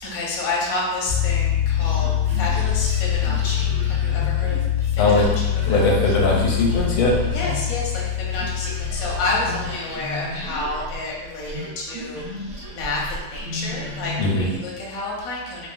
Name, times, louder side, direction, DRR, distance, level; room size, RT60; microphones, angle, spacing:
voice 1, 0.0-4.6 4.9-5.4 5.7-6.0 7.3-15.7, left 2 dB, 65° left, -4 dB, 0.9 m, -29 dB
sound 1, 1.1-9.7, left 11 dB, 80° right, 1.4 m, -24 dB
sound 2, 1.8-8.1 8.3-14.6, equal, 55° right, 1.5 m, -34 dB
voice 2, 5.7-7.2 14.2-14.5, left 2 dB, 80° left, -3 dB, 1.4 m, -20 dB
3.6 x 2.0 x 2.4 m, 1.1 s
omnidirectional pair, 2.2 m